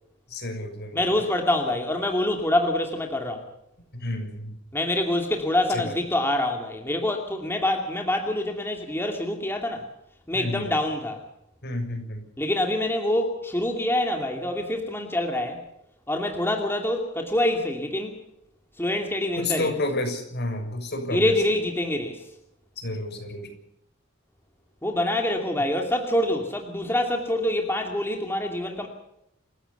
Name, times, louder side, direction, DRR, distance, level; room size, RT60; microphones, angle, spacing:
voice 1, 0.3-1.0 3.9-4.5 5.7-5.9 10.3-10.7 11.6-12.2 19.4-21.3 22.8-23.5, left 2 dB, 55° left, 5 dB, 6.7 m, -30 dB
voice 2, 0.9-3.5 4.7-9.9 10.3-11.2 12.4-15.6 16.1-18.2 18.8-19.7 21.1-22.3 24.8-28.9, left 1 dB, 10° left, 3 dB, 2.6 m, -26 dB
28.0 x 16.0 x 7.0 m, 0.81 s
head